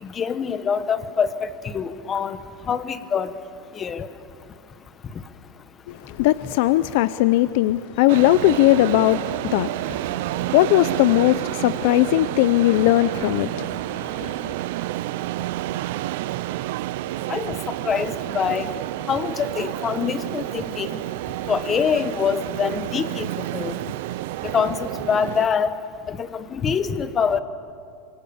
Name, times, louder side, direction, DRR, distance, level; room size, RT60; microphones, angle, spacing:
voice 1, 0.0-2.4 2.7-3.3 3.7-4.1 17.3-18.7 19.1-21.0 21.5-23.8 24.4-25.8 26.1-27.4, left 6 dB, 25° left, 1.1 m, -25 dB
voice 2, 5.9-14.5, left 15 dB, 65° left, 0.6 m, -20 dB
sound 1, 8.1-25.5, right 16 dB, 65° right, 0.5 m, -29 dB
27.5 x 25.0 x 7.1 m
supercardioid pair, 145°, 0 cm